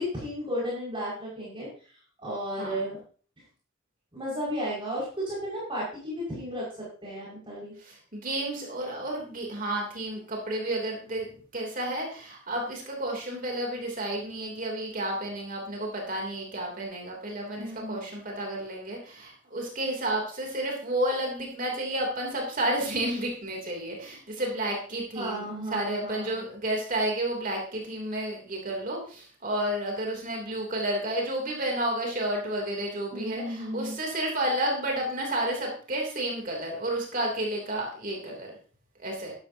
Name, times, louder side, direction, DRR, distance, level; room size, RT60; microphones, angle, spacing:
voice 1, 0.0-3.0 4.1-6.7 7.0-7.7 17.6-18.0 25.1-26.4 33.1-33.9, equal, 25° right, -6 dB, 5.8 m, -34 dB
voice 2, 7.8-38.5 39.0-39.3, right 1 dB, 45° right, 0 dB, 3.2 m, -31 dB
13.0 x 12.0 x 2.9 m, 0.41 s
head